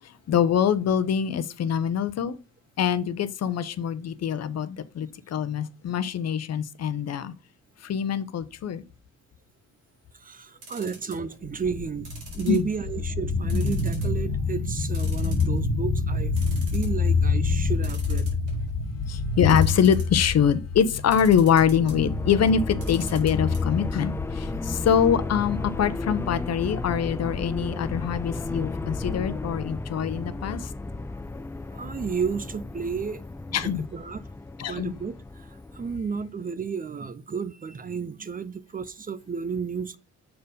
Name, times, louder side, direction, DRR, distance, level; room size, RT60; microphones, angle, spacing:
voice 1, 0.3-2.4 2.8-7.3 7.8-8.8 12.5-12.6 19.1-24.1 24.4-30.6 33.5-33.8 34.6-34.9, left 8 dB, 60° left, 0.8 m, -24 dB
voice 2, 10.1-16.3 16.7-18.4 31.7-33.2 33.5-34.3 34.7-40.0, right 6 dB, 30° right, 0.6 m, -32 dB
sound 1, 10.6-11.3 12.0-13.0 13.5-14.2 14.5-14.6 14.9-15.8 16.1-16.2 16.4-17.0 17.8-18.7 19.4-20.2 21.1-22.0 22.7-23.6 23.9-24.0 24.2-24.3, right 3 dB, 85° right, 4.2 m, -44 dB
sound 2, 11.4-29.3, left 4 dB, 75° left, 1.5 m, -29 dB
sound 3, 21.0-36.0, left 3 dB, 10° left, 0.3 m, -34 dB
6.7 x 4.6 x 5.1 m
cardioid pair, 90°, 30 cm